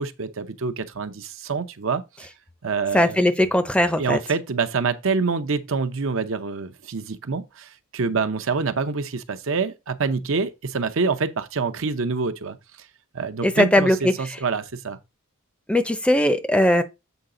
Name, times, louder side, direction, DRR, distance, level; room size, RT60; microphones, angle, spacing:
voice 1, 0.0-2.3 2.6-3.2 4.0-12.6 13.1-15.0, right 4 dB, 60° right, 0.7 m, -26 dB
voice 2, 2.9-4.2 13.4-14.4 15.7-16.8, left 1 dB, 5° left, 0.6 m, -19 dB
8.0 x 4.9 x 3.8 m
head